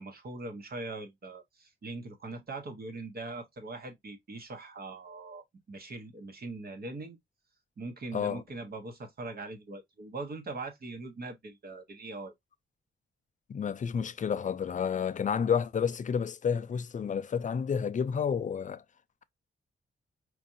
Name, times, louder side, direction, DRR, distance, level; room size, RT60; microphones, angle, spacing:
voice 1, 0.0-7.2 7.8-12.3, right 3 dB, 50° right, 1.1 m, -41 dB
voice 2, 13.5-18.8, left 7 dB, 40° left, 0.4 m, -30 dB
4.7 x 2.5 x 2.6 m
wide cardioid pair, 115°, 20 cm